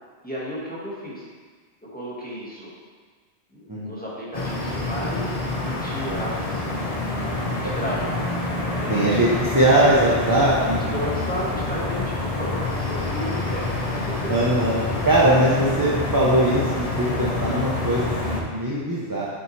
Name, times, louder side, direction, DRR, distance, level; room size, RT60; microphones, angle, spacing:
voice 1, 0.2-1.3 1.9-2.7 3.5-8.0 8.7-9.0 9.3-9.4 10.2-14.3 14.7-15.0, equal, 10° left, -7 dB, 1.5 m, -34 dB
sound 1, 4.3-18.4, left 2 dB, 35° left, 0.8 m, -27 dB
voice 2, 8.9-9.3 9.5-10.9 14.3-14.7 15.1-19.3, right 1 dB, 20° right, -6 dB, 0.8 m, -20 dB
7.2 x 5.8 x 3.3 m, 1.5 s
omnidirectional pair, 1.2 m